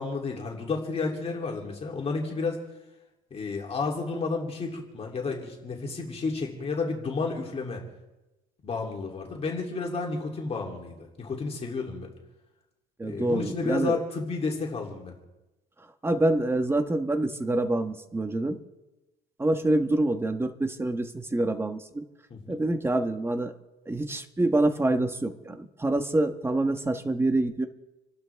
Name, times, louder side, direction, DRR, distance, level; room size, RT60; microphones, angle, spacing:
voice 1, 0.0-2.6 3.3-7.8 8.6-12.1 13.0-15.2 22.3-22.6, left 4 dB, 35° left, 0 dB, 3.2 m, -31 dB
voice 2, 13.0-14.0 16.0-18.6 19.4-22.0 22.5-23.5 23.9-27.7, right 2 dB, 15° right, 7 dB, 1.4 m, -26 dB
29.0 x 12.0 x 3.5 m, 1.0 s
cardioid pair, 110°, 17 cm